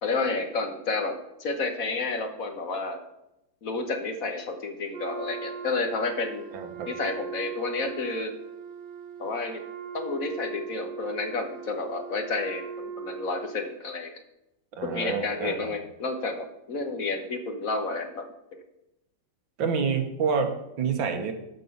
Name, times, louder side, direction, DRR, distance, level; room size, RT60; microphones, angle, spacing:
voice 1, 0.0-1.1 1.4-3.0 3.6-6.4 6.9-8.3 9.2-9.6 9.9-14.2 14.8-18.6, left 3 dB, 50° left, 6 dB, 1.3 m, -30 dB
Wind instrument woodwind instrument, 4.9-13.7, right 7 dB, 65° right, 1.5 m, -40 dB
voice 2, 6.5-6.9 14.7-15.7 19.6-21.3, right 5 dB, 90° right, 5 dB, 2.0 m, -28 dB
12.0 x 5.5 x 5.5 m, 0.88 s
omnidirectional pair, 2.0 m